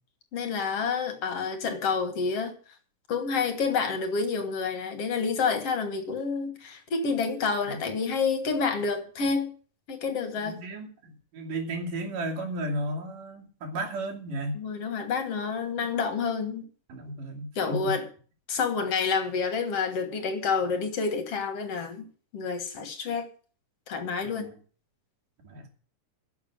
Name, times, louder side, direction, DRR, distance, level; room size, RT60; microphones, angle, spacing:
voice 1, 0.3-2.5 3.1-9.5 9.9-10.6 14.5-16.7 17.6-18.1 18.5-22.1 22.3-23.3 23.9-24.5, left 5 dB, 55° left, 2.3 m, -28 dB
voice 2, 10.4-14.6 16.9-18.0 24.4-24.5 25.4-25.7, right 1 dB, 85° right, 4.3 m, -34 dB
11.0 x 7.2 x 8.8 m
omnidirectional pair, 3.6 m